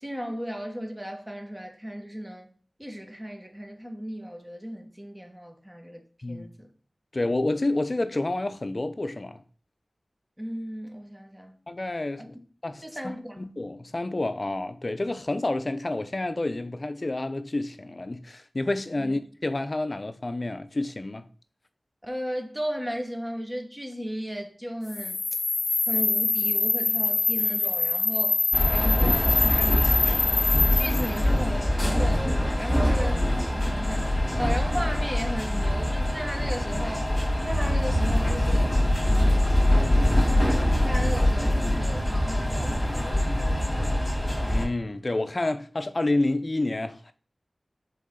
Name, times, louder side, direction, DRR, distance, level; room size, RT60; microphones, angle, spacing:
voice 1, 0.0-2.5 2.8-6.7 10.4-11.6 12.2-12.3 12.8-13.4 19.0-19.1 22.0-25.4 25.9-30.4 30.8-32.3 32.6-37.1 37.4-38.8 39.1-39.5 40.8-44.0, equal, 15° right, 1.3 m, -35 dB
voice 2, 7.1-9.4 11.7-12.3 12.6-21.2 44.4-47.1, left 2 dB, 45° left, 0.6 m, -29 dB
sound 1, 24.9-31.2, left 3 dB, 85° left, 0.4 m, -25 dB
sound 2, 28.5-44.7, left 1 dB, 15° left, 2.2 m, -24 dB
6.7 x 4.2 x 3.8 m
wide cardioid pair, 65°, 0 cm